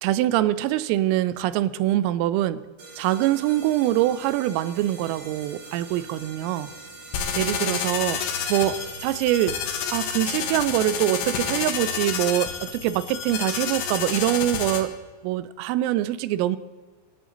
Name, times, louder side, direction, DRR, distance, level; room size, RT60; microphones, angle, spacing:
voice 1, 0.0-2.6 3.0-6.7 7.4-8.2 8.5-9.6 9.9-14.9 15.2-16.6, right 14 dB, 90° right, 15 dB, 3.4 m, -24 dB
sound 1, 2.8-9.6, right 3 dB, 60° right, 8.4 m, -43 dB
sound 2, 7.1-14.8, left 7 dB, 75° left, 4.1 m, -29 dB
26.5 x 13.0 x 3.9 m, 1.4 s
omnidirectional pair, 5.8 m